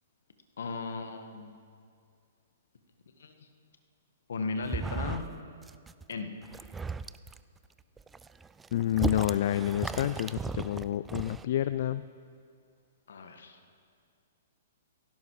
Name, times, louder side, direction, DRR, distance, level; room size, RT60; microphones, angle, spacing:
voice 1, 0.6-1.6 3.2-3.5 4.3-5.3 6.1-6.3 13.1-13.6, left 4 dB, 75° left, 6 dB, 1.8 m, -36 dB
sound 1, 4.6-5.4 5.6-6.0 6.4-7.4 8.0-11.4, right 4 dB, 10° right, 0.4 m, -36 dB
voice 2, 8.7-12.0, left 12 dB, 60° left, 14 dB, 0.4 m, -29 dB
17.0 x 16.0 x 4.9 m, 2.2 s
hypercardioid pair, 130°, 0 cm